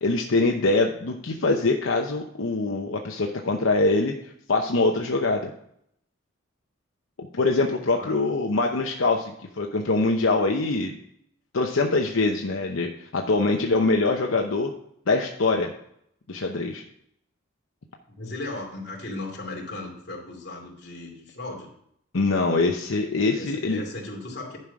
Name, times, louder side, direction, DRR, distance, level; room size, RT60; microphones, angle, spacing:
voice 1, 0.0-5.5 7.3-10.9 11.5-14.7 15.1-15.7 16.3-16.8 22.1-23.8, left 3 dB, 85° left, 2 dB, 0.8 m, -23 dB
voice 2, 18.1-21.7 23.3-24.6, left 2 dB, 55° left, 0 dB, 2.6 m, -36 dB
11.0 x 5.6 x 4.8 m, 0.71 s
head